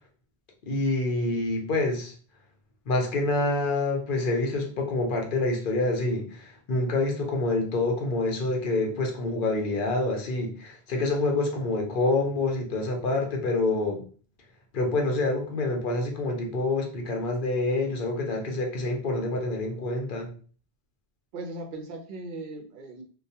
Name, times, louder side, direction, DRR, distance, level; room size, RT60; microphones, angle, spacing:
voice 1, 0.6-2.1 2.9-14.0 14.7-20.3, left 2 dB, 55° left, 1 dB, 0.8 m, -27 dB
voice 2, 21.3-23.0, right 2 dB, 60° right, 3 dB, 0.7 m, -38 dB
2.2 x 2.2 x 2.7 m, 0.41 s
omnidirectional pair, 1.1 m